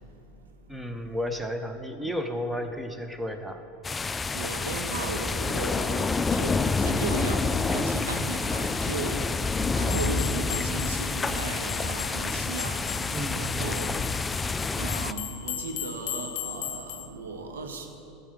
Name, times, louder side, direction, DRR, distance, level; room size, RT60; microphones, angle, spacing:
voice 1, 0.7-3.6 9.1-9.4 13.1-14.1, equal, 5° right, 6 dB, 0.8 m, -33 dB
sound 1, 3.8-15.1, left 4 dB, 15° left, 0.3 m, -28 dB
voice 2, 4.3-9.3 9.7-13.9 14.7-17.9, right 3 dB, 90° right, 4 dB, 1.1 m, -35 dB
sound 2, 9.9-17.1, left 11 dB, 60° left, 0.7 m, -38 dB
13.5 x 8.1 x 3.4 m, 2.8 s
hypercardioid pair, 95°, 0 cm